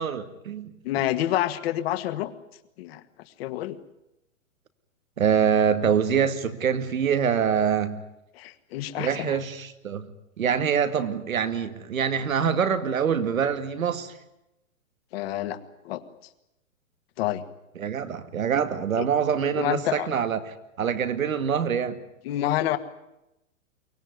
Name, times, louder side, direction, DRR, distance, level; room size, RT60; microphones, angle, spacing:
voice 1, 0.0-0.7 5.2-8.0 9.0-10.1 10.4-14.1 17.8-22.0, right 7 dB, 85° right, 10 dB, 2.2 m, -25 dB
voice 2, 0.8-2.3 2.8-3.0 3.4-3.8 8.3-9.4 15.1-15.6 15.8-16.0 17.2-17.4 19.0-19.1 19.6-20.1 22.3-22.8, left 13 dB, 45° left, 11 dB, 1.8 m, -28 dB
23.5 x 18.0 x 9.6 m, 0.89 s
hypercardioid pair, 140°, 40 cm